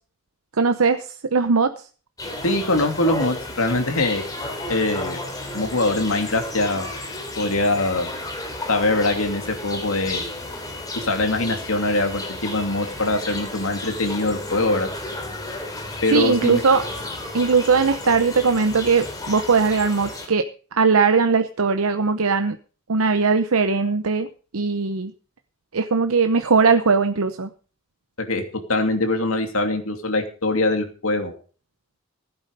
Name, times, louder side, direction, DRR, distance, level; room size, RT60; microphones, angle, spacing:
voice 1, 0.6-1.7 16.1-16.8 17.3-22.6 22.9-25.1 25.7-27.5, right 4 dB, 85° right, 9 dB, 0.8 m, -19 dB
sound 1, 2.2-20.3, left 2 dB, 15° left, 3.1 m, -33 dB
voice 2, 2.4-4.2 4.7-5.2 5.5-6.9 7.4-8.1 8.7-10.3 10.9-14.9 16.0-16.6 28.3-31.3, left 2 dB, 75° left, 5 dB, 2.7 m, -23 dB
16.0 x 8.8 x 5.4 m, 0.39 s
head